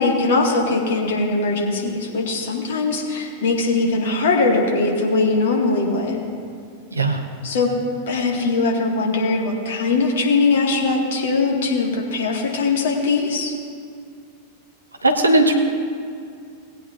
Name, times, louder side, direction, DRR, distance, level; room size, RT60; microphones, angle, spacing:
voice 1, 0.0-6.2 7.4-7.7 8.1-13.5, left 3 dB, 60° left, -1 dB, 2.0 m, -21 dB
voice 2, 15.0-15.5, right 2 dB, 80° right, 5 dB, 1.0 m, -17 dB
18.5 x 9.2 x 2.7 m, 2.3 s
figure-of-eight pair, 90°, 0 cm